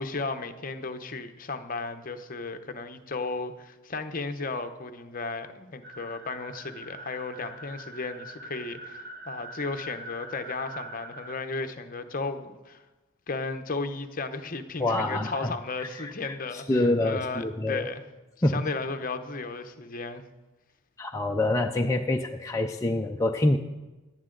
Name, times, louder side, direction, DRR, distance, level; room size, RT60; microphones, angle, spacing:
voice 1, 0.0-12.8 13.3-18.1 18.5-20.2, left 3 dB, 40° left, 8 dB, 0.8 m, -34 dB
sound 1, 5.8-11.3, right 1 dB, 45° right, 0.9 m, -43 dB
voice 2, 14.8-15.5 15.8-17.9 18.4-18.6 21.0-23.6, left 2 dB, 15° left, 2 dB, 0.4 m, -26 dB
17.5 x 11.0 x 3.9 m, 1.1 s
head